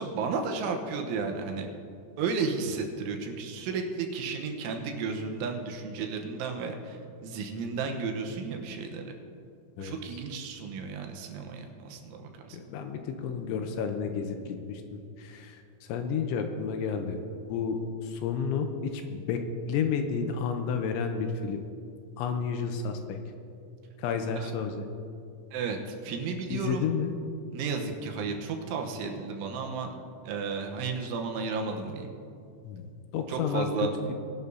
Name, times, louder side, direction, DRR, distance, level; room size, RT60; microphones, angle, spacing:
voice 1, 0.0-1.7 2.2-9.1 9.8-12.6 24.4-24.5 25.5-26.9 27.5-30.0 30.3-32.1 33.3-33.9, right 5 dB, 80° right, 3 dB, 3.4 m, -33 dB
voice 2, 12.5-17.2 17.5-21.6 22.2-23.2 24.0-24.9 26.5-27.1 32.6-34.1, left 6 dB, 85° left, 5 dB, 3.0 m, -31 dB
21.5 x 11.5 x 2.8 m, 2.5 s
omnidirectional pair, 5.6 m